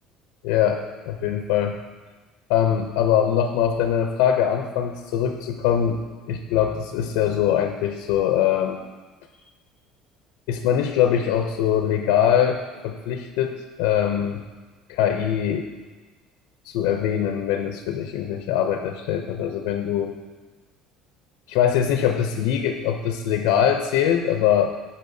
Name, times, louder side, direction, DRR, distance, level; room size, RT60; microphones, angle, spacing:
voice 1, 0.4-1.7 2.5-8.8 10.5-14.4 14.9-15.7 16.7-20.1 21.5-24.7, left 9 dB, 85° left, 5 dB, 0.5 m, -22 dB
13.0 x 5.4 x 2.7 m, 1.3 s
cardioid pair, 175°, 0 cm